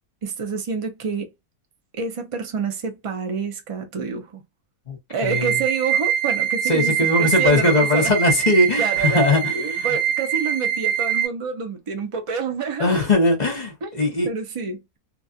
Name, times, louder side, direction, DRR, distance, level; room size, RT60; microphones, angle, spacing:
voice 1, 0.2-1.3 2.0-4.4 5.1-8.1 8.8-13.0 13.8-15.0, right 5 dB, 45° right, 0.4 m, -28 dB
voice 2, 4.9-5.6 6.6-10.0 12.8-14.3, left 2 dB, 35° left, 0.9 m, -20 dB
sound 1, 5.3-11.3, right 9 dB, 75° right, 1.3 m, -23 dB
3.0 x 2.3 x 2.6 m
omnidirectional pair, 1.6 m